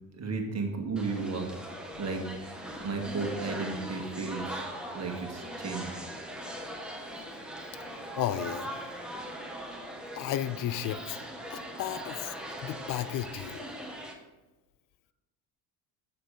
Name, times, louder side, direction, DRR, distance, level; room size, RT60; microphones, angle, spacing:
voice 1, 0.1-1.5 2.0-2.2 2.8-4.6 4.9-6.0, right 4 dB, 35° right, 3 dB, 1.8 m, -34 dB
sound 1, 1.0-14.1, equal, ahead, 1.6 m, -40 dB
voice 2, 8.2-8.8 10.1-11.2 11.5-12.4 12.6-13.6, left 12 dB, 45° left, 15 dB, 0.5 m, -33 dB
8.0 x 6.7 x 3.7 m, 1.1 s
supercardioid pair, 75°, 45 cm